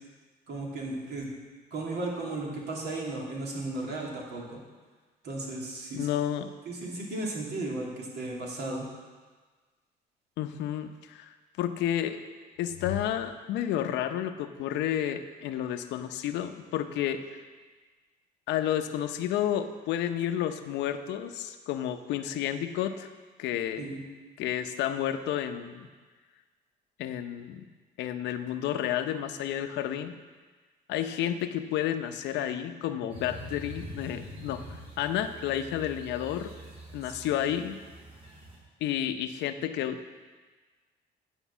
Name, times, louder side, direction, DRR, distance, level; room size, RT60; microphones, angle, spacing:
voice 1, 0.5-1.3 1.7-4.6 5.2-6.1 6.7-8.9 23.8-24.0 37.0-37.2, right 2 dB, 70° right, -2 dB, 2.6 m, -35 dB
voice 2, 5.9-6.5 10.4-12.2 12.6-17.4 18.5-23.1 23.4-24.0 24.4-25.9 27.0-27.7 28.0-30.1 30.9-36.5 36.9-37.8 38.8-40.1, left 10 dB, 80° left, 9 dB, 0.7 m, -31 dB
sound 1, 33.1-38.6, equal, 35° right, 3.6 m, -45 dB
10.0 x 5.3 x 7.2 m, 1.4 s
cardioid pair, 100°, 18 cm